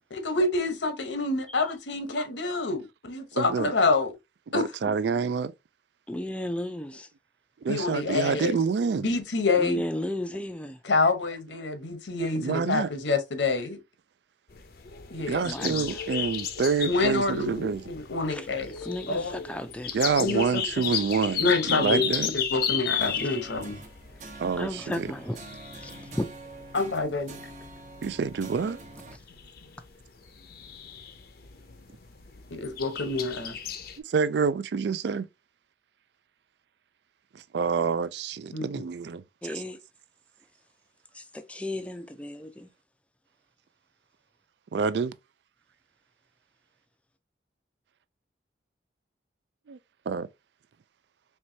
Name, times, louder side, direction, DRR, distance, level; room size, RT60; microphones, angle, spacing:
voice 1, 0.1-4.1 4.5-4.7 7.7-8.5 9.0-9.8 10.8-13.8 15.1-15.4 16.8-18.7 19.1-19.4 20.2-20.9 21.4-23.8 26.7-27.4 32.5-33.6 38.5-38.6, left 3 dB, 80° left, 0.9 m, -27 dB
voice 2, 3.3-3.7 4.5-5.5 7.6-9.2 12.4-12.9 15.3-18.0 19.9-22.3 24.4-25.1 28.0-28.8 34.0-35.3 37.3-39.5 44.7-45.1 49.7-49.8 50.1-50.3, right 5 dB, 70° right, 0.3 m, -27 dB
voice 3, 6.1-7.1 9.6-10.8 15.4-15.9 18.3-18.5 18.8-19.9 24.6-25.4 25.8-26.2 27.4-27.5 39.4-39.8 41.1-42.7, left 1 dB, 5° left, 0.4 m, -34 dB
sound 1, 14.5-34.0, left 8 dB, 55° left, 0.6 m, -35 dB
sound 2, 23.0-29.2, right 2 dB, 40° right, 0.7 m, -45 dB
4.6 x 3.2 x 2.7 m
head